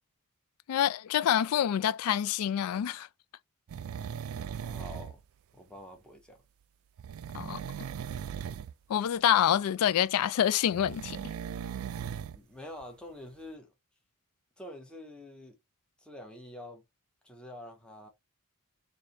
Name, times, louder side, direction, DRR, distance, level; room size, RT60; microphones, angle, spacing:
voice 1, 0.7-3.1 7.3-7.6 8.9-11.2, left 10 dB, 85° left, 0.3 m, -27 dB
sound 1, 3.7-5.2 7.0-8.7 10.7-12.4 12.8-12.9, right 8 dB, 70° right, 0.3 m, -38 dB
voice 2, 4.6-5.2 5.5-6.4 12.3-13.7 14.6-15.6 16.0-16.8 17.2-18.1, left 1 dB, 5° left, 0.8 m, -46 dB
3.2 x 2.6 x 3.9 m
head